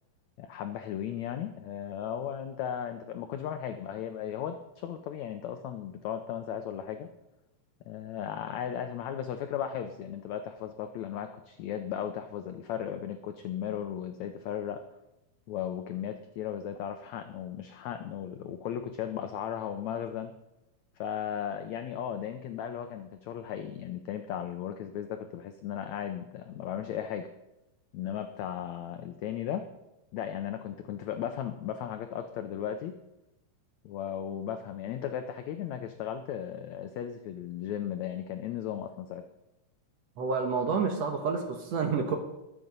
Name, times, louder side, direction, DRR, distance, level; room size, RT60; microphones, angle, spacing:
voice 1, 0.4-7.1 7.9-14.8 15.5-20.3 21.0-27.3 27.9-29.7 30.1-33.0 33.8-39.2, left 9 dB, 80° left, 7 dB, 1.6 m, -36 dB
voice 2, 40.2-42.2, right 5 dB, 60° right, 4 dB, 2.0 m, -29 dB
21.0 x 7.6 x 5.3 m, 0.95 s
omnidirectional pair, 4.0 m